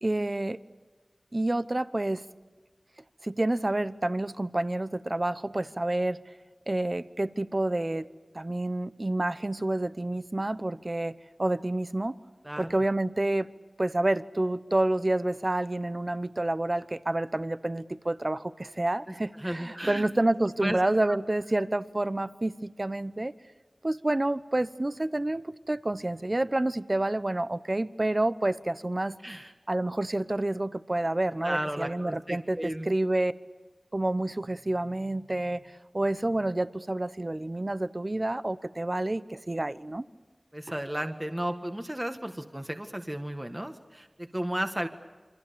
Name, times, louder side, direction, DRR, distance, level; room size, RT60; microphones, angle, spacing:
voice 1, 0.0-0.6 1.3-2.2 3.2-6.2 6.7-8.1 8.3-12.1 12.6-13.5 13.8-23.3 23.8-29.2 29.7-33.3 33.9-40.0, right 1 dB, 40° right, 14 dB, 1.0 m, -29 dB
voice 2, 19.1-20.0 20.6-21.2 29.2-29.5 31.4-32.9 40.5-44.9, right 1 dB, 20° right, 6 dB, 1.7 m, -34 dB
28.0 x 24.5 x 7.0 m, 1.3 s
wide cardioid pair, 50°, 0 cm